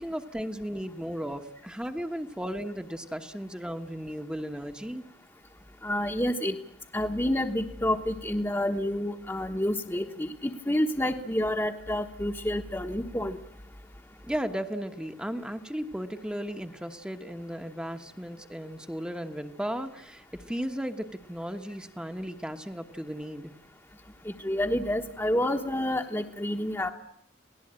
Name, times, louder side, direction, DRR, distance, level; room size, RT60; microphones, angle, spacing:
voice 1, 0.0-5.1 14.2-23.5, equal, 5° right, 6 dB, 1.1 m, -35 dB
voice 2, 5.8-6.5 6.9-13.4 24.2-26.9, left 1 dB, 15° left, 2 dB, 1.2 m, -29 dB
28.5 x 18.5 x 8.8 m, 0.73 s
head